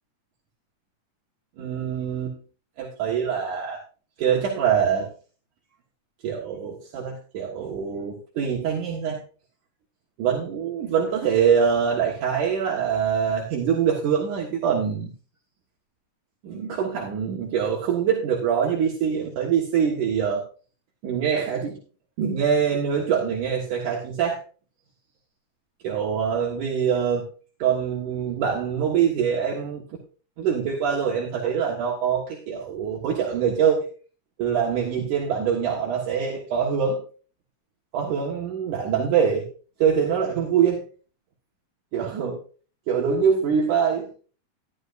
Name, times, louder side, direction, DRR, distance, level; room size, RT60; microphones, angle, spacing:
voice 1, 1.6-2.3 2.8-3.8 4.2-5.1 6.2-9.2 10.2-15.1 16.4-20.5 21.0-21.8 22.2-24.4 25.8-27.3 27.6-29.8 30.4-33.8 34.4-37.0 37.9-39.5 39.8-40.8 41.9-42.4 42.9-44.1, right 7 dB, 70° right, -2 dB, 3.1 m, -24 dB
12.5 x 12.0 x 2.6 m, 0.38 s
omnidirectional pair, 3.8 m